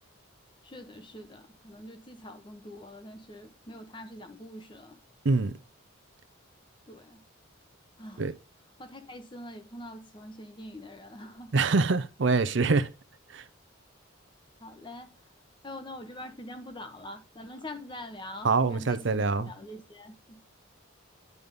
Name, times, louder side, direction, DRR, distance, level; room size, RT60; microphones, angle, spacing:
voice 1, 0.6-5.0 6.9-7.2 8.0-8.2 8.8-11.6 14.6-15.1 15.6-20.4, left 1 dB, 25° left, 1.0 m, -44 dB
voice 2, 11.5-12.9 13.3-13.4 18.4-19.5, right 4 dB, 60° right, 0.6 m, -24 dB
9.5 x 3.5 x 5.2 m
head